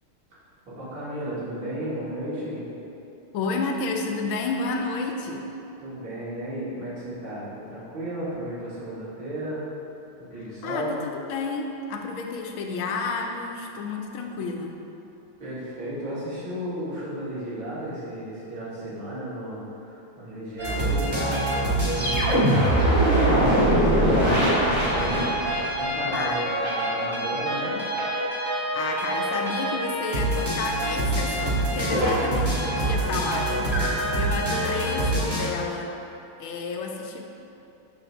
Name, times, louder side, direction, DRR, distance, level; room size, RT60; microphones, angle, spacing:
voice 1, 0.7-2.6 5.8-9.7 10.2-11.0 15.4-25.2 25.8-27.8 33.6-33.9, right 1 dB, 70° right, -10 dB, 2.8 m, -34 dB
voice 2, 3.3-5.5 10.6-14.8 26.1-26.4 28.5-35.9 36.4-37.3, left 4 dB, 75° left, 2 dB, 1.4 m, -31 dB
sound 1, 20.6-35.4, right 1 dB, 15° right, 1.4 m, -24 dB
7.0 x 4.1 x 6.0 m, 2.8 s
omnidirectional pair, 2.3 m